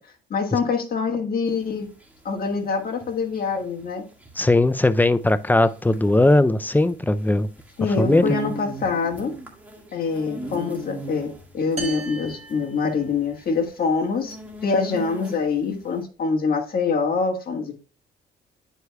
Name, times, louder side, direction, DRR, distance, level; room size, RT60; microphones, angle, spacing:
voice 1, 0.3-1.9 2.2-4.0 7.8-9.3 9.9-14.4 14.6-17.8, left 5 dB, 50° left, 1.5 m, -25 dB
sound 1, 1.5-15.7, right 1 dB, 10° right, 1.7 m, -37 dB
voice 2, 4.4-7.5 8.0-8.3, left 2 dB, 10° left, 0.4 m, -18 dB
sound 2, 11.8-13.5, right 3 dB, 35° right, 1.3 m, -35 dB
9.8 x 4.7 x 2.2 m
cardioid pair, 90°, 20 cm